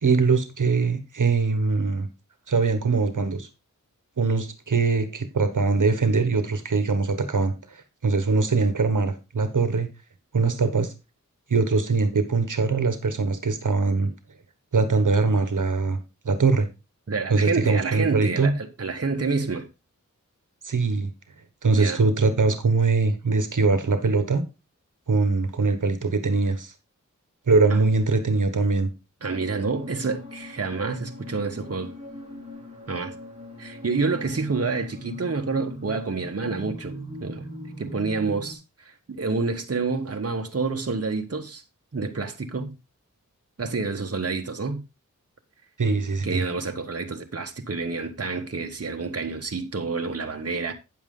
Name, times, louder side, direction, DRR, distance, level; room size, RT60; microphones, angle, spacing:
voice 1, 0.0-2.1 2.5-3.5 4.2-9.9 10.3-10.9 11.5-14.1 14.7-16.0 16.2-16.7 17.3-18.5 20.6-21.1 21.6-24.4 25.1-26.7 27.5-28.9 45.8-46.4, right 4 dB, 75° right, 1.3 m, -22 dB
voice 2, 17.1-19.7 21.7-22.0 27.7-27.8 29.2-31.9 32.9-33.1 33.6-37.4 37.8-41.6 41.9-42.7 43.6-44.8 46.2-50.7, right 4 dB, 50° right, 1.3 m, -28 dB
sound 1, 29.3-38.6, equal, 20° right, 4.2 m, -40 dB
9.6 x 7.3 x 3.7 m
wide cardioid pair, 55°, 31 cm